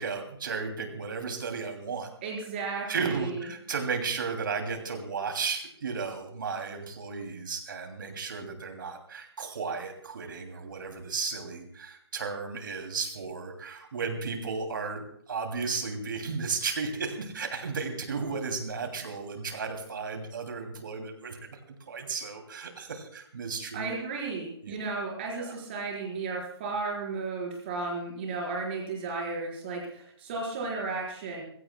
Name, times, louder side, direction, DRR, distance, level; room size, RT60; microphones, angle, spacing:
voice 1, 0.0-2.1 2.9-21.6 21.9-24.0 24.6-24.7 25.4-25.6, right 5 dB, 50° right, 5 dB, 2.8 m, -34 dB
voice 2, 2.2-3.4 23.7-31.4, right 3 dB, 25° right, -2 dB, 4.4 m, -34 dB
29.5 x 16.0 x 2.3 m, 0.66 s
hypercardioid pair, 175°, 14 cm